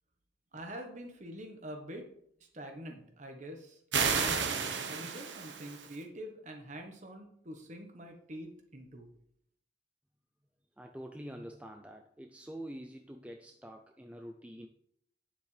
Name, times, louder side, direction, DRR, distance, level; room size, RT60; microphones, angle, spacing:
voice 1, 0.5-2.1 2.5-3.8 4.1-9.1, equal, 40° right, 4 dB, 1.2 m, -45 dB
sound 1, 3.9-6.0, right 6 dB, 70° right, 1.0 m, -32 dB
voice 2, 10.8-14.7, equal, 5° right, 4 dB, 0.4 m, -46 dB
9.2 x 7.2 x 3.3 m, 0.69 s
head